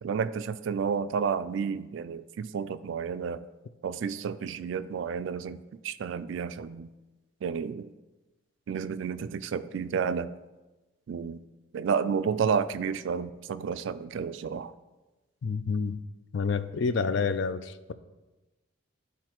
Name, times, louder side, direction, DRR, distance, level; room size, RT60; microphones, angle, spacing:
voice 1, 0.0-3.4 3.8-6.9 7.4-7.9 8.7-10.3 11.1-11.4 11.7-14.7, right 6 dB, 70° right, 13 dB, 0.3 m, -31 dB
voice 2, 15.4-16.0 16.3-17.9, left 5 dB, 65° left, 12 dB, 0.4 m, -28 dB
11.5 x 4.0 x 3.0 m, 1.1 s
head